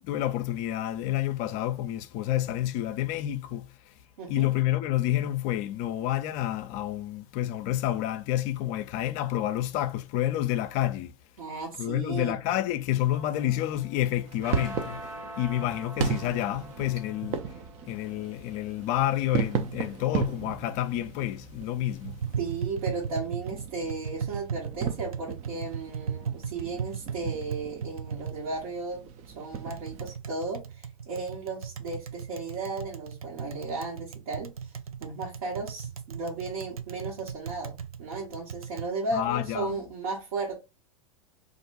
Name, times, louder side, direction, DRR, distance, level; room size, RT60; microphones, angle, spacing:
voice 1, 0.0-3.9 4.3-11.1 11.8-17.4 17.9-22.2 39.1-39.8, left 13 dB, 45° left, 0.4 m, -29 dB
voice 2, 4.2-4.5 11.4-12.4 22.4-34.7 35.0-40.6, right 3 dB, 70° right, 1.3 m, -35 dB
sound 1, 13.1-21.7, equal, 15° right, 0.8 m, -46 dB
sound 2, 14.2-30.1, right 7 dB, 40° right, 0.5 m, -36 dB
Tap, 22.0-38.9, right 7 dB, 90° right, 0.5 m, -37 dB
2.5 x 2.2 x 4.0 m
hypercardioid pair, 105°, 18 cm